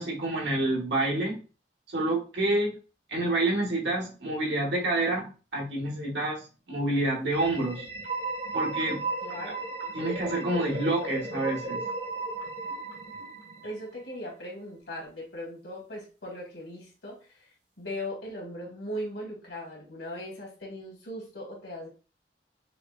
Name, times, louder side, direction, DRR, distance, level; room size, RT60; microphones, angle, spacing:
voice 1, 0.0-1.4 1.9-2.7 3.1-7.9 8.5-9.0 9.5-9.6 9.9-11.8, right 2 dB, 90° right, -1 dB, 1.5 m, -28 dB
sound 1, 7.3-14.0, right 3 dB, 70° right, 1.4 m, -35 dB
voice 2, 9.2-9.7 13.6-17.5 17.8-21.9, left 1 dB, 80° left, -1 dB, 1.8 m, -39 dB
5.9 x 2.1 x 2.4 m, 0.34 s
head